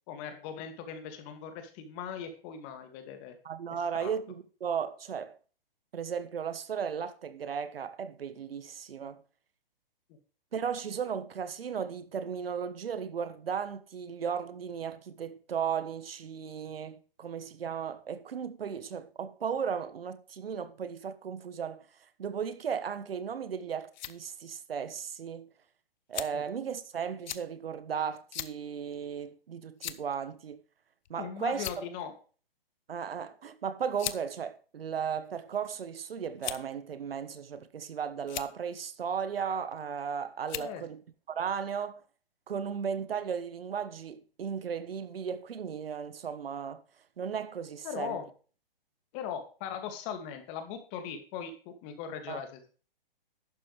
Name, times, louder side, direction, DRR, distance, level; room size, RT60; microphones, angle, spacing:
voice 1, 0.1-3.4 4.0-4.1 26.3-26.4 31.2-32.1 40.5-40.8 47.8-48.3 49.1-52.7, left 8 dB, 35° left, 2.2 m, -39 dB
voice 2, 3.4-5.3 5.9-9.2 10.5-21.8 22.2-25.5 26.1-30.6 31.1-31.7 32.9-41.0 41.3-42.0 42.5-46.8 47.2-48.2 52.3-52.4, right 7 dB, 75° right, 1.3 m, -35 dB
sound 1, 23.6-24.2 25.0-25.1 26.1-26.5 27.3-27.4 28.3-28.5 28.9-29.0 29.8-30.1 31.0-31.2 31.5-32.0 33.1-33.3 34.0-34.2 35.1-35.6 36.4-36.8 37.5-37.9 38.2-38.5 39.7-40.0 40.5-40.7, left 12 dB, 50° left, 0.9 m, -38 dB
11.5 x 8.7 x 3.3 m
hypercardioid pair, 135°, 29 cm